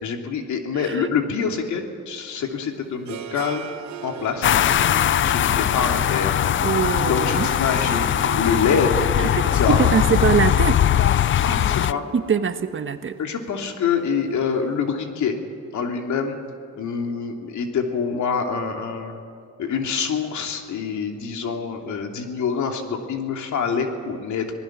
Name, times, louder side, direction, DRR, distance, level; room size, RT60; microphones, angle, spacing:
voice 1, 0.0-3.6 4.0-4.6 5.2-6.4 7.1-8.1 8.4-9.8 11.4-12.1 13.2-15.4 15.7-16.4 16.8-19.2 19.6-24.5, left 6 dB, 70° left, 3 dB, 2.9 m, -25 dB
Harp, 2.4-14.5, right 9 dB, 65° right, 1.1 m, -38 dB
sound 1, 4.4-11.9, left 11 dB, 40° left, 0.4 m, -20 dB
voice 2, 6.6-7.5 9.4-10.8 12.1-13.1, right 6 dB, 40° right, 9 dB, 1.3 m, -22 dB
26.5 x 19.0 x 6.2 m, 2.4 s
cardioid pair, 90°, 30 cm